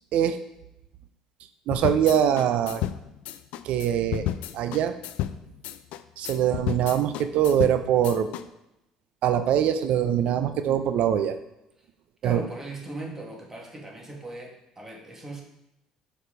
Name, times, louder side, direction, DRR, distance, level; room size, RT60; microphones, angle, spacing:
sound 1, 1.7-8.4, left 12 dB, 70° left, 0.4 m, -32 dB
voice 1, 1.7-2.8 3.6-4.3 4.5-4.9 6.2-8.3 9.2-11.4 12.2-12.4, right 9 dB, 65° right, 10 dB, 0.6 m, -23 dB
voice 2, 12.2-15.4, right 2 dB, 20° right, 0 dB, 2.1 m, -38 dB
6.8 x 4.8 x 5.0 m, 0.86 s
supercardioid pair, 70°, 2 cm